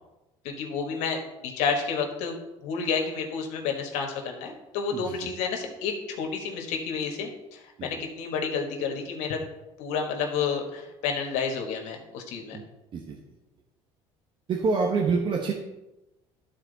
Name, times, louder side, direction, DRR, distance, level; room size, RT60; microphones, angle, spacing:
voice 1, 0.4-2.4 2.6-9.4 9.8-12.6, left 5 dB, 85° left, 3 dB, 1.5 m, -30 dB
voice 2, 4.9-5.3 7.8-8.0 12.5-12.6 12.9-13.2 14.5-15.5, right 4 dB, 45° right, 0 dB, 1.1 m, -27 dB
12.0 x 4.3 x 4.0 m, 0.97 s
cardioid pair, 120°, 12 cm